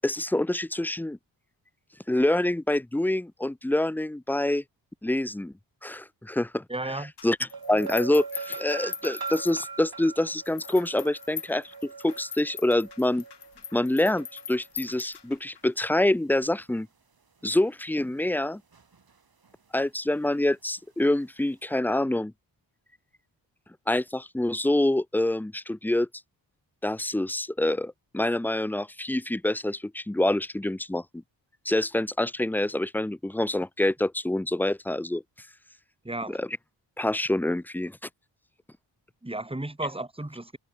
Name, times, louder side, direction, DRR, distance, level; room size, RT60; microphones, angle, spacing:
voice 1, 0.0-1.2 2.1-4.6 5.0-5.5 5.8-6.6 7.2-13.2 13.7-16.9 17.4-18.6 19.7-22.3 23.9-26.1 26.8-31.2 31.6-35.2 36.3-36.6 37.0-38.0, left 1 dB, 5° left, 0.6 m, -26 dB
voice 2, 6.7-7.1 36.0-36.4 39.2-40.6, right 2 dB, 10° right, 3.0 m, -33 dB
sound 1, 7.2-10.0 10.5-15.6, left 7 dB, 60° left, 2.5 m, -41 dB
sound 2, 7.5-14.8 18.7-19.1 19.5-19.6, right 5 dB, 50° right, 7.5 m, -41 dB
supercardioid pair, 45°, 45 cm